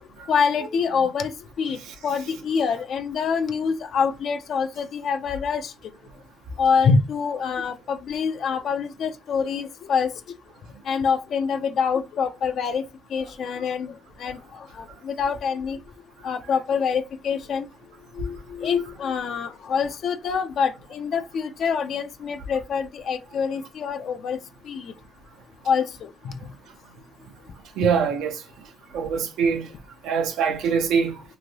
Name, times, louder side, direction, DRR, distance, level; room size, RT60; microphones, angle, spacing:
voice 1, 0.3-1.3 1.6-1.8 2.0-5.7 6.6-10.1 10.9-12.8 13.1-13.9 14.2-14.4 14.8-15.8 16.2-17.7 18.2-24.4 24.7-24.9 25.7-26.3, left 6 dB, 65° left, 0.4 m, -25 dB
voice 2, 27.8-28.4 28.9-29.7 30.0-31.2, right 6 dB, 90° right, 0.6 m, -23 dB
3.0 x 2.6 x 2.7 m
cardioid pair, 90°, 0 cm